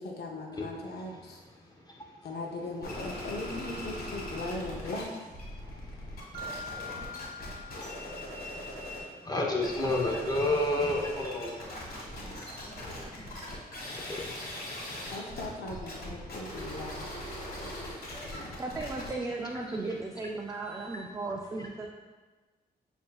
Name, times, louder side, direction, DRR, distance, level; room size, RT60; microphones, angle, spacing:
voice 1, 0.0-1.4 2.2-5.4 15.1-17.9 18.2-18.6, left 2 dB, 75° left, 0 dB, 0.7 m, -39 dB
sound 1, 2.8-5.0 5.3-9.1 9.5-21.0, left 1 dB, 60° left, 1.3 m, -41 dB
Mallet percussion, 6.3-8.9, left 2 dB, 65° right, 0.6 m, -44 dB
voice 2, 9.2-11.7 14.0-14.3 15.0-15.1, left 2 dB, 25° left, -1 dB, 0.9 m, -29 dB
voice 3, 9.8-10.2 14.8-14.9 18.6-21.9, right 3 dB, 20° right, 0 dB, 0.3 m, -36 dB
7.3 x 2.6 x 2.3 m, 1.3 s
cardioid pair, 80°, 17 cm